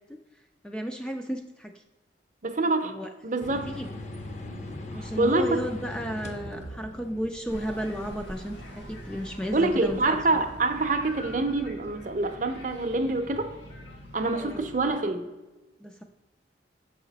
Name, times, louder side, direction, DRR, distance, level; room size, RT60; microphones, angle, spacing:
voice 1, 0.6-1.7 2.8-3.1 3.8-3.9 4.9-10.4 14.3-14.7 15.8-16.0, equal, 5° left, 3 dB, 0.3 m, -33 dB
voice 2, 2.4-2.9 3.2-3.7 5.0-5.6 9.5-13.6 14.1-15.3, right 2 dB, 45° right, 7 dB, 0.6 m, -26 dB
sound 1, 3.4-11.5, left 1 dB, 40° left, 0.7 m, -42 dB
sound 2, 7.5-14.9, equal, 85° left, 1.5 m, -44 dB
6.7 x 4.9 x 4.0 m, 1.1 s
head